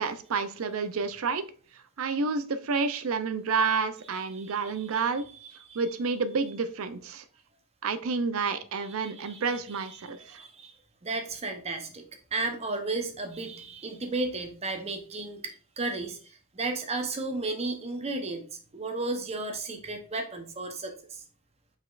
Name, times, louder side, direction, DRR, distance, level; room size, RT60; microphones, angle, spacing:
voice 1, 0.0-1.4 2.0-5.3 5.7-7.2 7.8-10.4, right 4 dB, 75° right, 12 dB, 0.5 m, -29 dB
voice 2, 4.3-5.0 5.4-5.8 9.0-10.7 11.0-12.0 12.3-15.4 15.8-18.4 18.7-21.2, right 3 dB, 30° right, 5 dB, 0.8 m, -34 dB
5.2 x 4.1 x 2.4 m, 0.41 s
head